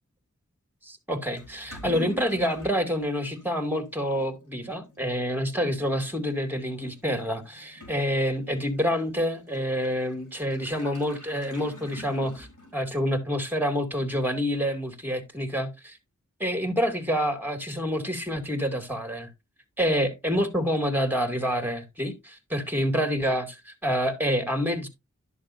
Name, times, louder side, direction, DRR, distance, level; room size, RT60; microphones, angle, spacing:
voice 1, 0.8-12.5 12.7-16.0 16.4-19.3 19.8-24.9, equal, 5° right, 2.6 m, -27 dB
Toilet flush / Liquid, 1.4-13.0, left 2 dB, 85° left, 4.1 m, -46 dB
11.5 x 6.5 x 2.7 m
wide cardioid pair, 40°, 30 cm